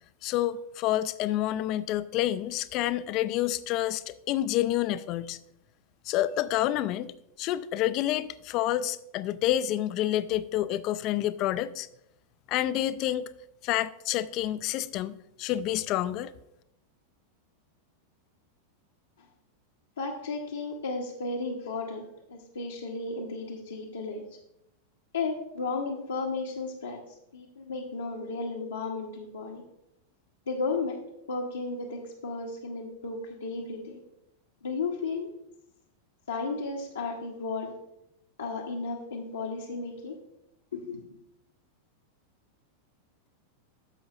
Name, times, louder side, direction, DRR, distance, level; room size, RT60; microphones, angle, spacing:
voice 1, 0.2-5.4 6.1-11.9 12.5-13.3 13.6-16.3, left 13 dB, 40° left, 0.3 m, -28 dB
voice 2, 20.0-24.2 25.1-27.0 27.3-29.6 30.5-31.0 31.3-34.0 34.6-35.3 36.3-37.7 38.4-40.2 40.7-41.0, left 3 dB, 70° left, 0.9 m, -34 dB
10.5 x 7.0 x 2.5 m
figure-of-eight pair, 90°, 0 cm